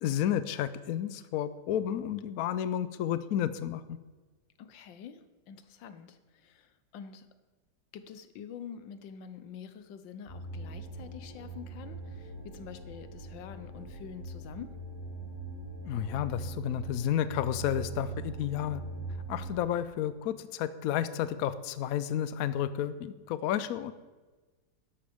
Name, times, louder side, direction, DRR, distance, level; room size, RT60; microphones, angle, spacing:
voice 1, 0.0-4.0 15.8-18.8 19.3-23.9, left 10 dB, 70° left, 13 dB, 0.9 m, -31 dB
voice 2, 4.6-7.3 7.9-14.8, left 7 dB, 85° left, 11 dB, 1.5 m, -47 dB
sound 1, 10.3-19.6, right 3 dB, 45° left, 3.8 m, -42 dB
12.5 x 11.5 x 3.5 m, 1.3 s
omnidirectional pair, 2.0 m